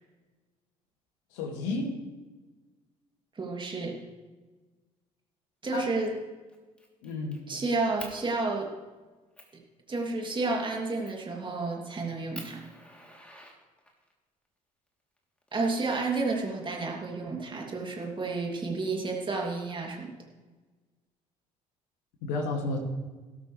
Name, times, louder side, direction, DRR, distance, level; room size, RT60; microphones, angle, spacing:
voice 1, 1.3-2.0 5.7-5.9 7.0-7.4 22.2-22.8, left 3 dB, 65° left, 2 dB, 2.4 m, -31 dB
voice 2, 3.4-4.0 5.6-6.1 7.5-8.7 9.9-12.6 15.5-20.1, right 3 dB, 25° right, 0 dB, 2.9 m, -31 dB
Fire, 5.8-6.1 6.5-7.4 8.0-8.2 8.8-8.9 9.4-9.6 11.0-11.3 11.8-11.9 12.3-14.1 15.2-16.1, left 1 dB, 5° left, 3.3 m, -47 dB
19.0 x 13.0 x 3.4 m, 1.3 s
figure-of-eight pair, 55°, 19 cm